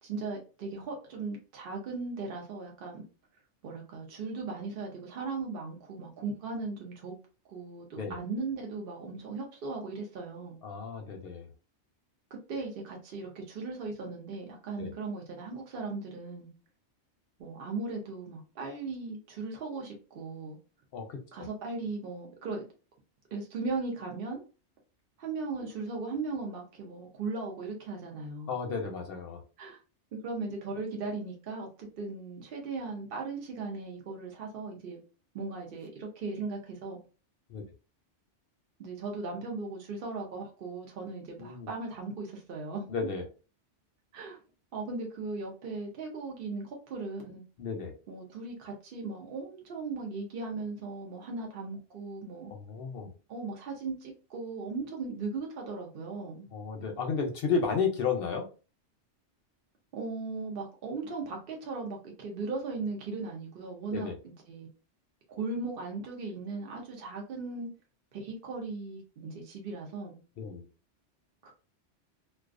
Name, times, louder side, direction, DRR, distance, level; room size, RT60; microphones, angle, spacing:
voice 1, 0.0-3.0 3.6-7.2 7.5-10.6 12.3-16.5 17.4-20.6 21.3-22.7 23.3-24.4 25.2-28.5 29.6-29.8 30.1-35.0 35.3-37.0 38.8-42.9 44.1-44.4 44.7-47.4 48.1-52.5 53.3-56.5 59.9-64.7 65.3-67.7 68.1-70.2 71.4-71.5, right 3 dB, 60° right, 1 dB, 0.7 m, -37 dB
voice 2, 10.6-11.5 14.8-14.9 20.9-21.5 28.5-29.4 37.5-37.6 41.4-41.7 42.9-43.2 47.6-47.9 52.5-53.1 56.5-58.5 63.9-64.1 70.4-70.6, left 5 dB, 65° left, 4 dB, 0.7 m, -33 dB
2.3 x 2.3 x 2.4 m, 0.33 s
omnidirectional pair, 1.2 m